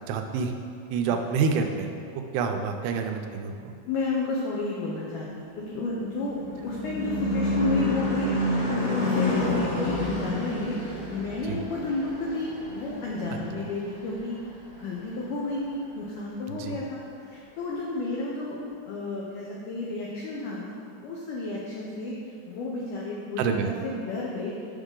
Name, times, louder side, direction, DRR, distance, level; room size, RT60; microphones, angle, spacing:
voice 1, 0.1-0.5 0.9-3.7 11.5-11.6 16.5-16.8 23.4-23.7, right 5 dB, 85° right, 5 dB, 2.7 m, -28 dB
voice 2, 3.9-14.4 14.8-17.0 17.3-18.6 18.9-20.7 21.0-22.2 22.5-24.5, left 2 dB, 85° left, -4 dB, 1.8 m, -31 dB
Car passing by / Truck / Engine, 5.7-14.4, left 1 dB, 70° left, 1.5 m, -29 dB
7.0 x 6.3 x 3.7 m, 2.4 s
omnidirectional pair, 4.7 m